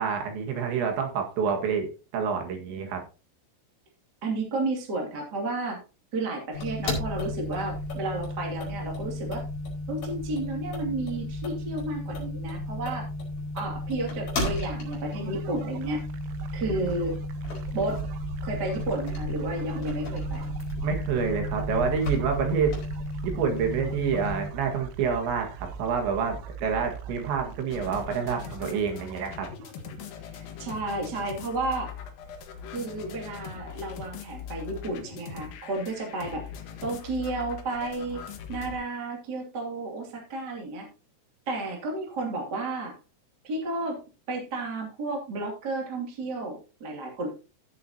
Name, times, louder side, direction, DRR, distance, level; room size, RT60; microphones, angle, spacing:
voice 1, 0.0-3.0 20.8-22.8 23.2-29.5, right 6 dB, 65° right, 4 dB, 3.8 m, -28 dB
voice 2, 4.2-5.8 6.1-9.4 9.9-13.1 13.5-16.0 16.5-17.1 17.7-18.0 18.4-20.5 30.6-31.9 32.7-36.4 36.8-38.2 38.5-40.9 41.4-42.9 43.4-44.0 44.3-47.3, right 2 dB, 35° right, 0 dB, 1.7 m, -32 dB
sound 1, 6.5-24.5, left 1 dB, 45° left, 6.1 m, -33 dB
sound 2, 14.3-30.0, right 6 dB, 85° right, 3.8 m, -41 dB
sound 3, 27.7-38.8, left 7 dB, 65° left, 2.4 m, -41 dB
16.5 x 7.6 x 2.8 m, 0.33 s
omnidirectional pair, 6.0 m